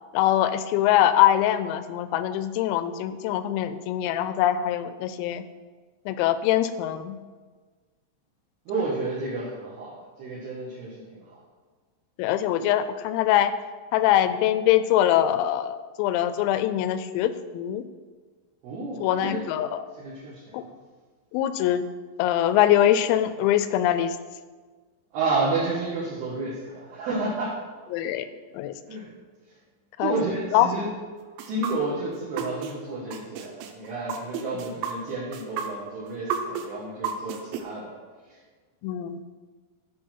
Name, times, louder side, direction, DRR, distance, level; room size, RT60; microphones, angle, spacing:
voice 1, 0.1-5.4 6.1-7.2 12.2-13.5 13.9-17.8 19.0-19.8 20.5-20.6 21.3-21.9 22.2-24.2 27.9-28.3 28.5-28.7 30.0-30.2 30.5-30.7 38.8-39.2, left 12 dB, 85° left, 12 dB, 3.2 m, -23 dB
voice 2, 8.7-11.2 18.6-19.5 20.0-20.7 25.1-27.6 28.9-29.1 30.0-30.9 31.4-37.9 38.3-38.4, right 3 dB, 65° right, -7 dB, 2.9 m, -31 dB
sound 1, 31.4-32.7 33.1-37.6, right 8 dB, 80° right, 3.5 m, -31 dB
13.5 x 5.1 x 4.4 m, 1.4 s
omnidirectional pair, 6.0 m